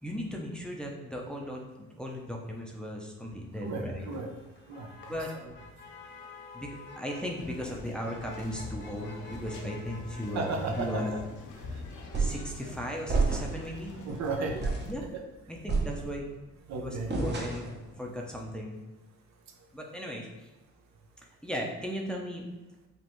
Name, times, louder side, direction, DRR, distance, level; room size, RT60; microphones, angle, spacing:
voice 1, 0.0-4.0 5.1-5.3 6.5-10.5 10.8-11.1 12.2-13.9 14.8-15.1 15.5-16.3 16.7-18.8 19.7-20.5 21.4-22.5, equal, 5° left, -1 dB, 0.6 m, -37 dB
Motor vehicle (road), 3.6-14.1, left 2 dB, 40° left, 0.9 m, -51 dB
voice 2, 3.6-4.3 4.7-5.5 10.3-11.2 14.0-14.7 16.7-17.2, right 3 dB, 65° right, 3 dB, 0.7 m, -34 dB
sound 1, 7.4-14.9, left 3 dB, 75° left, 0.8 m, -45 dB
sound 2, 12.1-12.5 13.1-13.7 14.1-14.2 14.6-15.0 15.7-16.4 17.1-17.8, right 3 dB, 35° right, 0.9 m, -29 dB
5.3 x 2.5 x 3.1 m, 1.1 s
cardioid pair, 90°, 30 cm